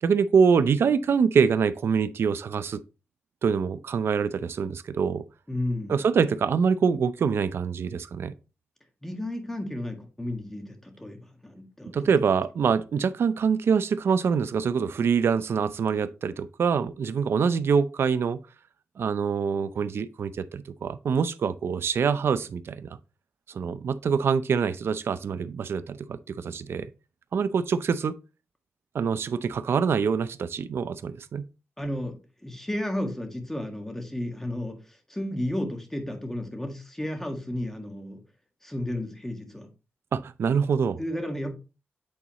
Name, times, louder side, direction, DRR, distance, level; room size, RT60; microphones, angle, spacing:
voice 1, 0.0-2.8 3.4-5.2 5.9-8.3 11.9-18.4 19.0-23.0 23.5-26.9 27.3-28.2 28.9-31.4 40.1-41.0, right 6 dB, 65° right, 0.5 m, -25 dB
voice 2, 5.5-6.0 9.0-12.1 31.8-32.1 32.4-38.2 38.6-39.7 41.0-41.5, left 1 dB, 10° left, 1.6 m, -33 dB
8.6 x 4.1 x 2.9 m
wide cardioid pair, 100°, 4 cm